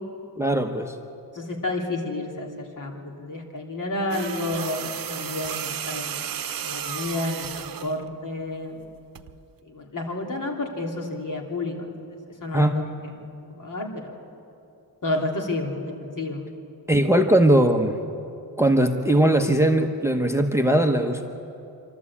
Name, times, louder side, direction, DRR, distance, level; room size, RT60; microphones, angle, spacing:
voice 1, 0.4-0.9 12.5-12.8 16.9-18.0 18.6-21.2, right 1 dB, 5° right, 4 dB, 0.9 m, -20 dB
voice 2, 1.3-6.2 6.6-8.8 9.6-11.9 12.4-12.9 13.5-14.1 15.0-16.5, left 2 dB, 55° left, 1 dB, 3.0 m, -30 dB
sound 1, 4.1-8.0 9.2-9.4, right 9 dB, 60° right, 0.8 m, -33 dB
27.0 x 12.5 x 8.5 m, 2.8 s
wide cardioid pair, 115°, 39 cm